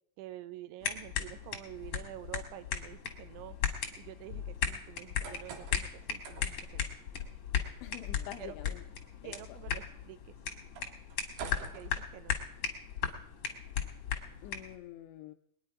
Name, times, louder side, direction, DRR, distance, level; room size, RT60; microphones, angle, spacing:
voice 1, 0.2-3.6 4.0-6.9 8.4-8.7 9.2-10.4 11.6-12.4, right 14 dB, 80° right, 3.0 m, -48 dB
sound 1, 0.8-14.8, left 8 dB, 65° left, 1.8 m, -37 dB
sound 2, 4.9-12.7, right 5 dB, 65° right, 3.3 m, -50 dB
voice 2, 7.8-8.8 9.2-9.6 14.4-15.3, left 12 dB, 80° left, 2.5 m, -46 dB
21.5 x 9.8 x 4.7 m
omnidirectional pair, 5.5 m